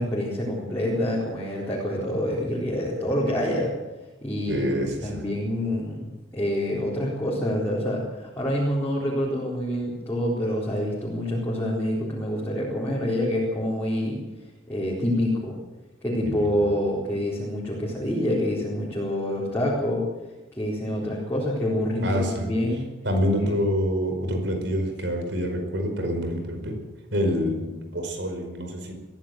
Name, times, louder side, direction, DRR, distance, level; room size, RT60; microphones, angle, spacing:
voice 1, 0.0-3.7 4.2-14.2 14.7-15.6 16.0-20.0 20.5-22.9, left 1 dB, 15° left, -6 dB, 4.2 m, -27 dB
voice 2, 4.5-5.2 22.0-22.5 23.0-26.8 27.1-28.9, equal, 65° right, 5 dB, 5.0 m, -26 dB
22.5 x 15.0 x 7.7 m, 1.1 s
head